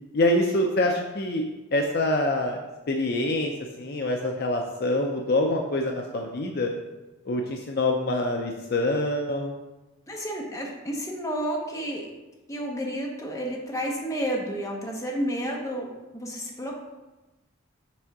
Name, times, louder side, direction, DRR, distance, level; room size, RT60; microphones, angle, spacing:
voice 1, 0.1-1.4 1.7-2.6 2.9-3.5 3.8-6.7 7.3-9.5, left 1 dB, 45° left, 2 dB, 0.5 m, -25 dB
voice 2, 10.1-12.1 12.5-16.7, equal, 15° left, -2 dB, 0.9 m, -31 dB
6.1 x 3.6 x 5.9 m, 1.1 s
head